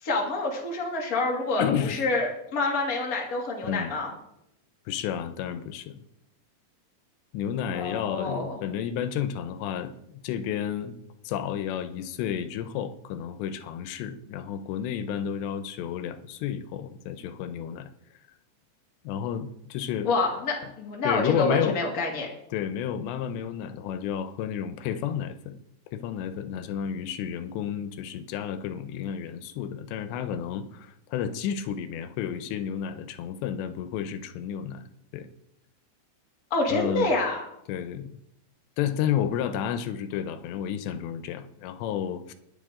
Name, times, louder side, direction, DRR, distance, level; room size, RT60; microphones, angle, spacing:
voice 1, 0.0-4.1 7.7-8.6 20.0-22.3 36.5-37.4, left 3 dB, 25° left, -1 dB, 2.0 m, -27 dB
voice 2, 1.6-2.0 3.6-3.9 4.9-6.0 7.3-11.0 11.2-17.9 19.0-20.1 20.6-20.7 21.0-21.8 22.5-25.6 25.9-34.8 35.1-35.3 36.7-37.1 37.7-38.1 38.8-42.3, left 9 dB, 85° left, 10 dB, 3.0 m, -31 dB
21.0 x 7.7 x 3.8 m, 0.82 s
omnidirectional pair, 4.9 m